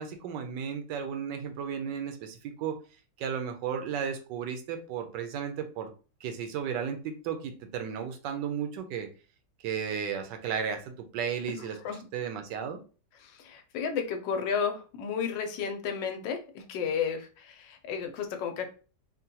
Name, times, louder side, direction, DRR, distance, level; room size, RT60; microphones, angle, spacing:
voice 1, 0.0-2.8 3.2-5.9 6.2-9.1 9.6-11.8 12.1-12.8, right 7 dB, 80° right, 6 dB, 1.3 m, -34 dB
voice 2, 11.5-12.1 13.2-18.7, left 6 dB, 85° left, 5 dB, 1.3 m, -33 dB
3.7 x 2.2 x 2.7 m, 0.36 s
omnidirectional pair, 1.9 m